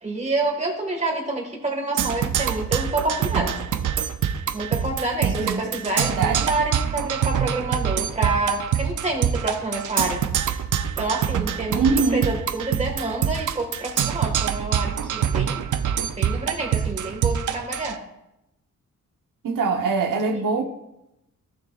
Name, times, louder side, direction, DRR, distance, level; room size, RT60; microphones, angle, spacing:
voice 1, 0.0-3.5 4.5-10.2 11.0-15.6 16.2-18.0, right 2 dB, 20° right, 1 dB, 1.8 m, -27 dB
Percussion, 2.0-17.9, right 9 dB, 70° right, 0.6 m, -25 dB
voice 2, 5.2-5.7 6.0-6.5 11.7-12.3 19.4-20.6, right 4 dB, 90° right, 3 dB, 1.0 m, -23 dB
15.5 x 6.6 x 2.4 m, 0.87 s
wide cardioid pair, 170°, 32 cm